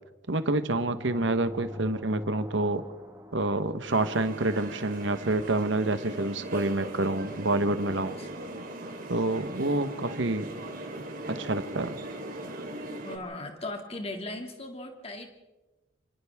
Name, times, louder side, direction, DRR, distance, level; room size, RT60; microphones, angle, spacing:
voice 1, 0.3-2.8 3.3-8.1 9.1-10.5 11.3-11.9, right 2 dB, 65° right, 10 dB, 1.2 m, -28 dB
sound 1, 0.7-4.5, equal, 15° right, 1.7 m, -43 dB
sound 2, 3.8-13.2, right 1 dB, 45° right, 3.0 m, -39 dB
voice 2, 7.9-8.7 13.0-15.3, left 2 dB, 30° left, 3 dB, 2.5 m, -39 dB
27.5 x 26.0 x 3.6 m, 1.1 s
head